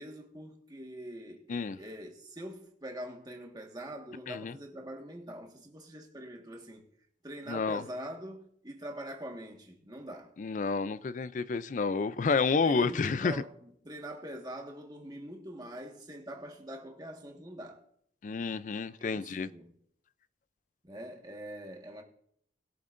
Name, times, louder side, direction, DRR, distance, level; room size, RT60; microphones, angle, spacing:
voice 1, 0.0-6.8 7.2-10.3 12.6-17.8 19.0-19.7 20.8-22.0, equal, 20° right, 1.5 m, -44 dB
voice 2, 7.5-7.8 10.4-13.4 18.2-19.5, left 4 dB, 45° left, 0.4 m, -30 dB
21.0 x 7.8 x 2.6 m
head